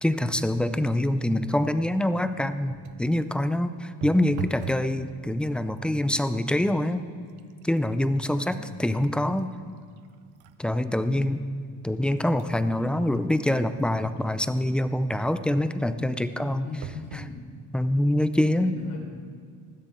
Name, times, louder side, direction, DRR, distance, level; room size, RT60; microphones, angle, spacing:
voice 1, 0.0-7.0 7.6-9.5 10.6-11.4 11.8-16.7 17.7-18.8, left 1 dB, 5° left, 11 dB, 0.4 m, -25 dB
sound 1, 2.7-3.1 4.0-4.9 5.3-5.8 6.5-6.6 7.0-10.6 11.1-11.2 11.9-14.6 16.8-17.3 18.0-18.1 18.4-18.5, right 9 dB, 85° right, 0.8 m, -43 dB
voice 2, 8.3-8.8 16.5-17.4 18.6-19.0, left 4 dB, 80° left, 0 dB, 4.0 m, -40 dB
20.0 x 14.5 x 3.6 m, 2.1 s
cardioid pair, 150°, 36 cm